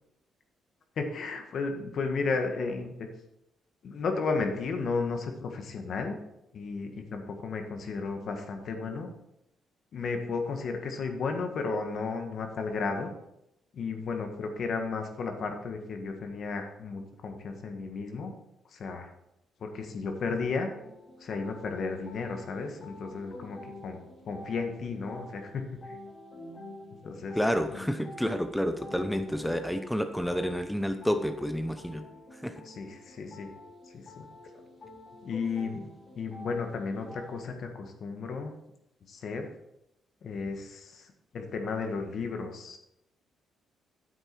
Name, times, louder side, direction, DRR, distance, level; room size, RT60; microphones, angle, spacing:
voice 1, 1.0-3.1 3.8-6.2 6.5-9.1 9.9-13.1 13.7-18.3 18.7-19.1 19.6-20.7 21.2-24.0 24.2-26.0 27.0-27.4 27.7-27.9 32.6-33.5 33.9-34.2 34.5-34.6 35.2-35.9 36.1-38.5 39.1-39.5 40.2-42.8, left 4 dB, 60° left, 5 dB, 1.6 m, -33 dB
sound 1, 20.7-37.5, left 1 dB, 35° left, 2.5 m, -49 dB
voice 2, 27.3-32.0 32.3-32.6, equal, 5° left, 7 dB, 0.7 m, -29 dB
9.2 x 8.0 x 4.5 m, 0.83 s
cardioid pair, 90°, 0 cm